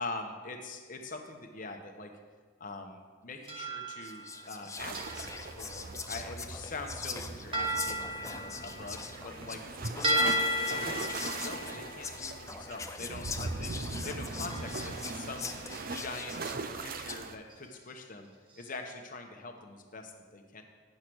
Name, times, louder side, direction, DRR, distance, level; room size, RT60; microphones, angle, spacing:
voice 1, 0.0-2.1 2.6-5.3 5.6-13.7 14.0-15.5 15.8-18.3 18.6-20.6, left 3 dB, 40° left, 4 dB, 1.0 m, -43 dB
Whispering, 3.4-3.7 4.0-17.3, left 4 dB, 15° left, 0.4 m, -43 dB
sound 1, 3.5-4.6 4.9-5.6 7.5-9.7 10.0-13.2 14.5-15.6 15.8-16.4 16.9-17.0 17.5-17.7 18.5-18.6, right 1 dB, 25° right, 1.1 m, -35 dB
sound 2, 4.8-17.4, right 3 dB, 45° right, 0.5 m, -40 dB
10.0 x 6.6 x 6.2 m, 1.5 s
head